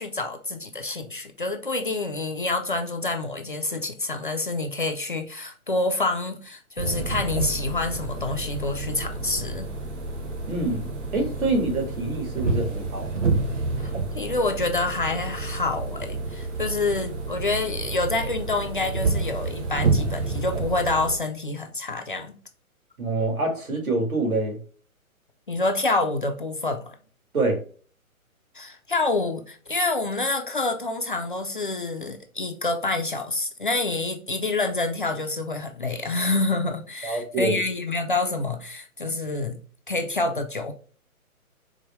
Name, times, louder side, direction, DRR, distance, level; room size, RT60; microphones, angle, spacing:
voice 1, 0.0-9.7 13.8-22.3 25.5-26.9 28.5-39.6 39.9-40.7, left 2 dB, 40° left, 0.4 m, -27 dB
sound 1, 6.8-21.2, right 3 dB, 55° right, 1.1 m, -29 dB
voice 2, 10.4-13.1 23.0-24.6 27.3-27.6 37.0-37.6, right 2 dB, 75° right, 1.9 m, -26 dB
4.7 x 2.2 x 3.0 m
figure-of-eight pair, 135°, 43 cm